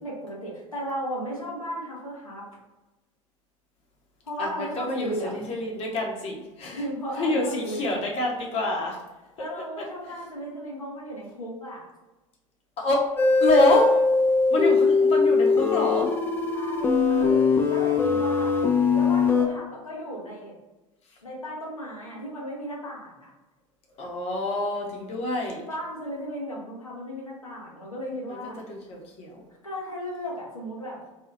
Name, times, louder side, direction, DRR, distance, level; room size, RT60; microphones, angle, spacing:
voice 1, 0.0-2.4 4.2-5.5 6.7-7.9 9.4-11.9 15.2-15.3 16.5-18.5 18.9-20.5 21.2-23.3 25.6-28.6 29.6-31.1, equal, 85° left, -5 dB, 0.9 m, -35 dB
voice 2, 4.4-6.8 7.2-9.0 9.8-9.9 12.8-13.1 13.4-13.9 14.5-16.1 24.0-25.6 28.7-29.3, left 2 dB, 35° left, 0 dB, 0.8 m, -26 dB
sound 1, 13.2-19.5, left 4 dB, 10° left, 0.4 m, -21 dB
2.7 x 2.3 x 3.9 m, 1.1 s
figure-of-eight pair, 75°, 17 cm